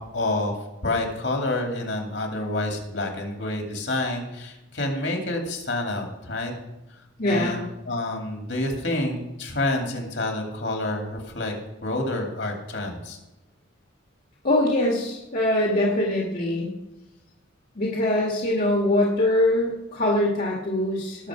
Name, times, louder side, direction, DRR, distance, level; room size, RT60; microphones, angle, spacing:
voice 1, 0.1-0.6 0.8-6.5 7.2-11.5 11.8-13.2, left 2 dB, 60° left, 2 dB, 2.5 m, -28 dB
voice 2, 7.2-7.6 14.4-16.7 17.8-21.3, left 1 dB, 45° left, -2 dB, 1.8 m, -23 dB
19.0 x 7.0 x 5.0 m, 0.99 s
head